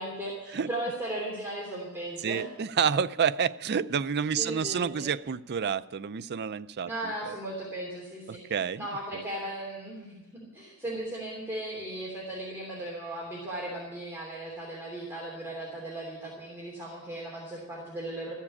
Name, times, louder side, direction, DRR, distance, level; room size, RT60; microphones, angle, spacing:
voice 1, 0.0-2.4 4.4-5.1 6.8-8.4 8.8-18.4, right 1 dB, 10° right, 3.0 m, -37 dB
voice 2, 2.2-7.3 8.3-8.9, right 7 dB, 45° right, 0.4 m, -29 dB
14.0 x 7.3 x 10.0 m
head